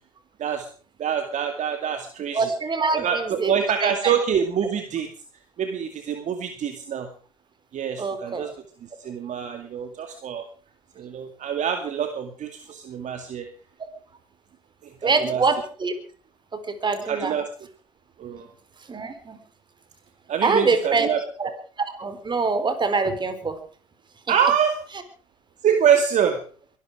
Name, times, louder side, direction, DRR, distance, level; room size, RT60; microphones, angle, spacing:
voice 1, 1.0-2.5 2.9-5.1 5.6-7.1 7.7-8.5 8.8-10.5 11.0-13.5 14.8-15.5 17.0-17.5 18.2-18.5 20.3-21.2 24.3-24.8 25.6-26.4, right 8 dB, 45° right, 7 dB, 2.2 m, -25 dB
voice 2, 2.3-3.5 3.8-4.1 8.0-8.5 15.0-15.9 16.7-17.3 18.9-19.4 20.4-21.1 21.4-21.5 22.0-23.6, right 4 dB, 25° right, 10 dB, 4.0 m, -24 dB
23.0 x 12.5 x 4.9 m, 0.42 s
hypercardioid pair, 70°, 17 cm